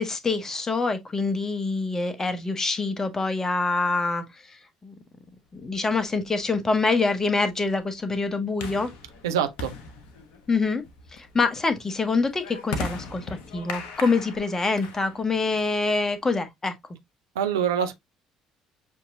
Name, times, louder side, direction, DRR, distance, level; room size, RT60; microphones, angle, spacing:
voice 1, 0.0-4.2 4.8-4.9 5.5-8.9 10.5-10.8 11.1-16.7, left 3 dB, 20° left, 0.9 m, -25 dB
sound 1, 5.9-16.3, left 4 dB, 60° left, 0.8 m, -39 dB
voice 2, 9.2-9.7 17.4-17.9, right 8 dB, 70° right, 0.5 m, -25 dB
6.3 x 2.8 x 2.6 m
figure-of-eight pair, 50°, 2 cm